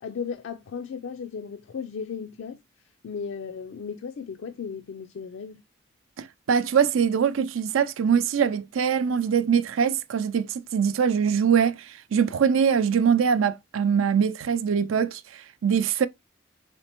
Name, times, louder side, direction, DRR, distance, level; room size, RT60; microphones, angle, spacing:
voice 1, 0.0-2.6 3.0-5.6, left 6 dB, 70° left, 0.4 m, -35 dB
voice 2, 6.2-16.1, right 7 dB, 85° right, 0.4 m, -23 dB
4.3 x 3.3 x 2.9 m
head